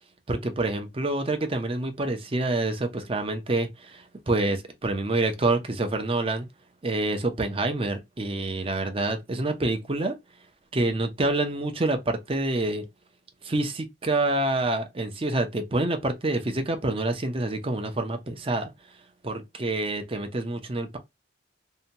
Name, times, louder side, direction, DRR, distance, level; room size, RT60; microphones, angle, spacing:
voice 1, 0.3-6.5 6.8-10.1 10.7-12.8 13.4-18.7 19.2-21.0, right 2 dB, 30° right, 0.5 m, -27 dB
2.7 x 2.2 x 2.7 m
head